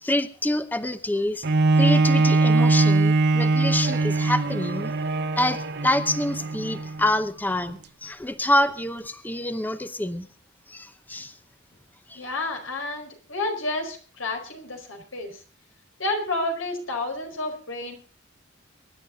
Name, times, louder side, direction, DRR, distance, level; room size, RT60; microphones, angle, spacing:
voice 1, 0.0-1.5 1.7-4.9 5.4-10.3 10.7-11.4 12.1-12.2, left 1 dB, 10° left, 11 dB, 0.7 m, -26 dB
Bowed string instrument, 1.4-7.1 7.7-7.8, right 3 dB, 60° right, 0.9 m, -21 dB
voice 2, 12.1-15.4 16.0-17.9, left 2 dB, 90° left, 3 dB, 4.8 m, -30 dB
23.5 x 11.0 x 3.9 m, 0.38 s
head